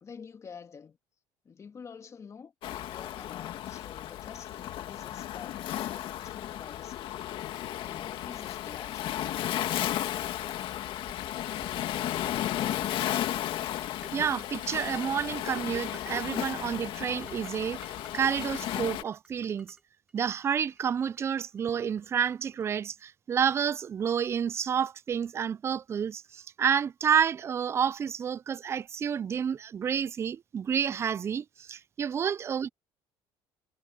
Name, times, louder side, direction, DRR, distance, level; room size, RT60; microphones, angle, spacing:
voice 1, 0.0-1.0 1.4-7.4 7.8-9.3 10.4-10.7, left 6 dB, 30° left, 2.1 m, -49 dB
Waves surf, 2.6-19.0, left 12 dB, 65° left, 1.9 m, -34 dB
sound 1, 11.1-11.2 11.6-11.7 12.2-12.9 13.6-13.7 14.0-14.3 14.6-15.0 15.6-16.6 16.9-19.8 20.1-22.6, right 2 dB, 10° right, 3.3 m, -50 dB
voice 2, 14.1-17.8 18.1-19.8 20.1-32.7, right 7 dB, 30° right, 0.3 m, -29 dB
cardioid pair, 115°, 10 cm